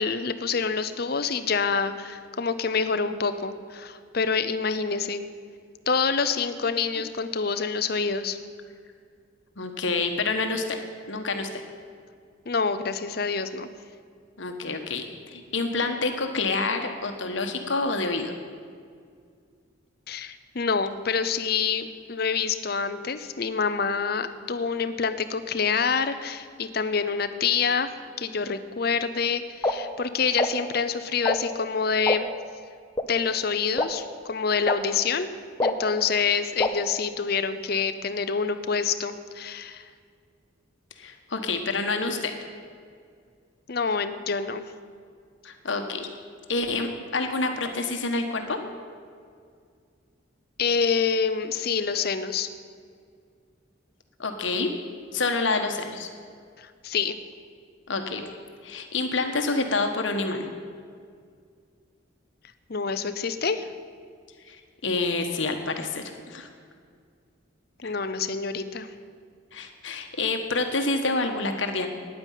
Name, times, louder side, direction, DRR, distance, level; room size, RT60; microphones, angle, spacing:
voice 1, 0.0-5.2 5.9-8.4 12.5-13.7 20.1-27.9 28.2-32.3 33.1-35.3 35.6-39.9 43.7-44.6 50.6-52.5 56.6-57.2 62.7-63.7 67.8-68.9, left 5 dB, 50° left, 10 dB, 0.7 m, -27 dB
voice 2, 9.6-10.8 11.1-11.6 14.4-18.3 41.0-42.3 45.4-46.1 46.5-48.6 54.2-54.7 55.1-56.1 57.9-58.2 58.6-60.5 64.5-64.6 64.8-66.5 67.8-67.9 69.5-71.9, left 3 dB, 75° left, 5 dB, 1.3 m, -28 dB
sound 1, 29.6-29.7 30.4-30.5 31.2-31.4 32.1-32.2 33.0-33.1 33.8-33.9 34.7-34.8 35.6-35.7 36.6-36.7, left 2 dB, 15° left, 0.7 m, -23 dB
9.8 x 9.7 x 9.1 m, 2.1 s
head